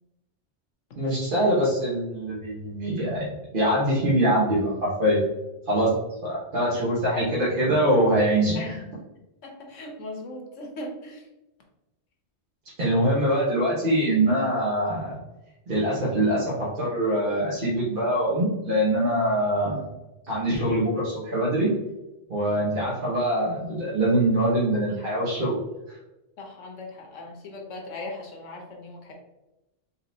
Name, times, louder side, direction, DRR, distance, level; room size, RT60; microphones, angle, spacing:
voice 1, 0.9-5.2 5.7-6.0 6.2-8.8 12.8-15.2 15.7-19.8 20.2-21.7 22.3-25.6 25.9-26.0, right 1 dB, 45° right, -8 dB, 1.3 m, -23 dB
voice 2, 9.4-11.2 26.4-29.1, left 2 dB, 90° left, 1 dB, 1.3 m, -38 dB
4.0 x 3.8 x 2.8 m, 0.99 s
omnidirectional pair, 1.2 m